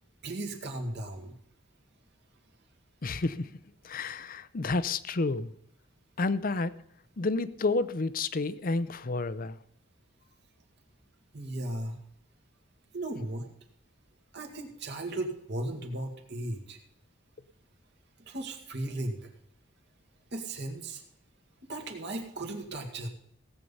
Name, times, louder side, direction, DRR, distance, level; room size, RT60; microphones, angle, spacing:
voice 1, 0.2-1.3 11.3-12.0 12.9-13.5 14.3-16.8 18.3-19.3 20.3-21.0 21.7-23.1, right 1 dB, 60° right, 4 dB, 2.1 m, -36 dB
voice 2, 3.0-3.5 3.8-5.5 6.2-6.8 7.2-9.6, left 3 dB, 45° left, 15 dB, 0.6 m, -30 dB
17.0 x 8.4 x 5.5 m, 0.71 s
head